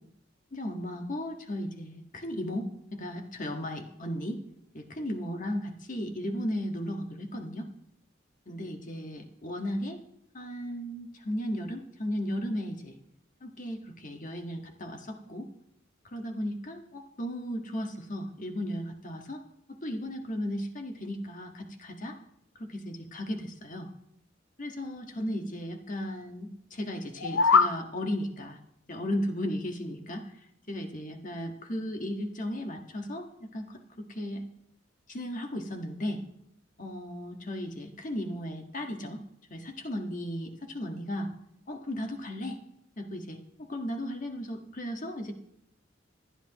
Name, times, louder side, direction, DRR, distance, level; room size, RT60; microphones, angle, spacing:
voice 1, 0.5-4.4 4.7-7.7 8.5-10.0 10.3-12.9 13.4-15.5 16.0-19.4 19.8-22.2 22.6-23.9 24.6-28.6 28.9-30.3 30.7-34.4 35.1-36.2 36.8-39.2 39.5-41.3 41.7-42.6 43.0-45.3, equal, 40° left, 3 dB, 1.6 m, -35 dB
sound 1, 27.1-27.8, left 5 dB, 75° left, 0.7 m, -22 dB
26.0 x 10.5 x 3.0 m, 0.77 s
head